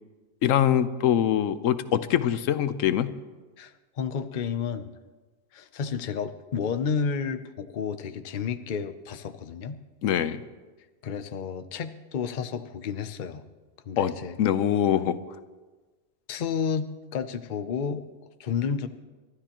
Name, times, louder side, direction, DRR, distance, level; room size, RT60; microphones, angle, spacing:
voice 1, 0.4-3.2 10.0-10.4 14.0-14.1 14.4-15.2, left 10 dB, 90° left, 12 dB, 1.1 m, -23 dB
voice 2, 3.6-4.9 5.5-9.8 11.0-13.4 13.9-14.4 16.3-18.1 18.4-18.9, left 6 dB, 45° left, 10 dB, 0.7 m, -31 dB
29.5 x 13.0 x 3.0 m, 1.3 s
omnidirectional pair, 1.3 m